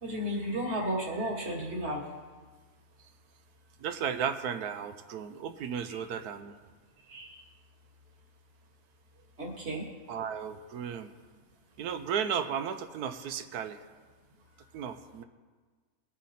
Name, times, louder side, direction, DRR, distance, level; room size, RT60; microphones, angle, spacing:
voice 1, 0.0-2.0 5.9-6.0 7.1-7.4 9.4-9.8, equal, 45° right, -1 dB, 2.2 m, -33 dB
voice 2, 3.8-6.5 10.1-11.1 11.8-13.8 14.7-15.2, right 7 dB, 85° right, 9 dB, 1.2 m, -34 dB
20.0 x 7.3 x 4.2 m, 1.4 s
omnidirectional pair, 1.6 m